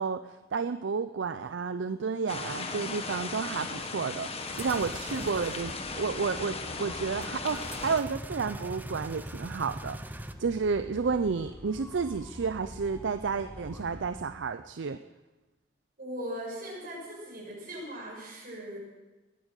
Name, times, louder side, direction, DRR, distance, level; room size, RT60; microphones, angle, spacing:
voice 1, 0.0-4.3 4.6-10.0 10.4-15.0, right 5 dB, 70° right, 10 dB, 0.5 m, -31 dB
sound 1, 2.3-8.0, left 3 dB, 30° left, 1.1 m, -37 dB
sound 2, 4.4-5.8 7.2-10.3, right 1 dB, 10° right, 0.6 m, -41 dB
sound 3, 5.3-14.2, equal, 10° left, 1.5 m, -47 dB
voice 2, 16.0-18.8, equal, 50° right, -4 dB, 6.9 m, -39 dB
20.0 x 9.0 x 6.5 m, 1.1 s
head